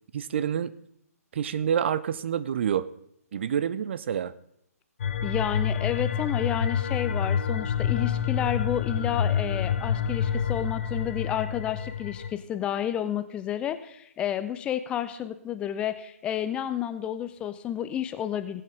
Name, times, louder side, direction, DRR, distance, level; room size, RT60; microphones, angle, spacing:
voice 1, 0.1-0.7 1.3-2.9 3.3-4.3, right 8 dB, 45° right, 16 dB, 0.5 m, -27 dB
sound 1, 5.0-12.3, left 7 dB, 50° left, 1.0 m, -28 dB
voice 2, 5.2-18.6, left 10 dB, 10° left, 11 dB, 0.4 m, -31 dB
17.5 x 8.4 x 3.6 m, 0.73 s
figure-of-eight pair, 135°, 9 cm